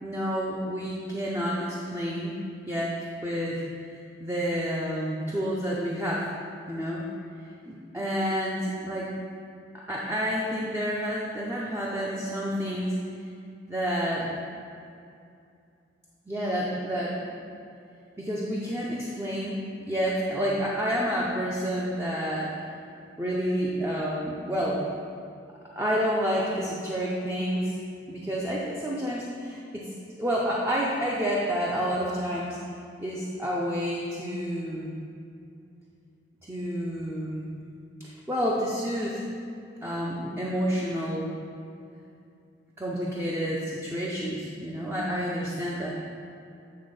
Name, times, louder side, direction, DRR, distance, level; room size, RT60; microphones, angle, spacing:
voice 1, 0.0-2.4 2.7-3.6 4.2-6.3 6.7-7.1 7.7-9.1 9.7-13.0 13.7-14.3 16.3-17.2 18.2-22.5 23.2-24.8 25.7-27.7 28.1-29.9 30.2-32.6 33.0-34.9 36.4-37.5 38.0-39.3 39.8-41.3 42.8-45.9, equal, 15° right, -5 dB, 0.6 m, -29 dB
8.7 x 3.6 x 5.5 m, 2.5 s
head